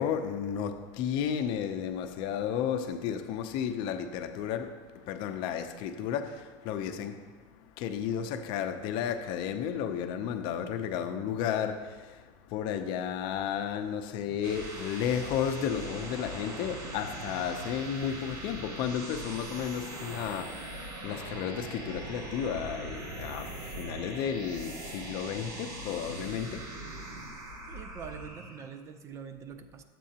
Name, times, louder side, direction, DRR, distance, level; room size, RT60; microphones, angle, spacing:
voice 1, 0.0-7.3 7.6-26.8, left 8 dB, 55° left, 0.6 m, -33 dB
sound 1, 14.1-28.7, right 2 dB, 90° right, 2.3 m, -41 dB
voice 2, 27.7-29.8, right 7 dB, 30° right, 0.5 m, -44 dB
10.0 x 7.5 x 2.8 m
supercardioid pair, 145°, 10 cm